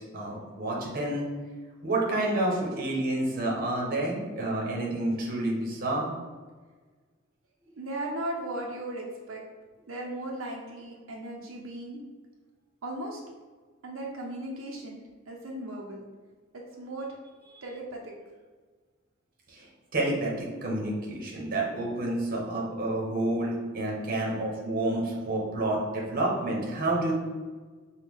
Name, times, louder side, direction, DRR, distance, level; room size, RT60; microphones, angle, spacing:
voice 1, 0.1-1.3 1.8-6.1 19.5-19.7 19.9-27.1, right 1 dB, 45° right, -2 dB, 0.9 m, -29 dB
voice 2, 7.8-9.4 9.9-12.0 12.8-13.2 13.8-15.0 15.3-16.0 16.5-17.1 17.6-18.1, right 1 dB, 85° right, -1 dB, 0.6 m, -37 dB
5.0 x 2.3 x 3.5 m, 1.4 s
head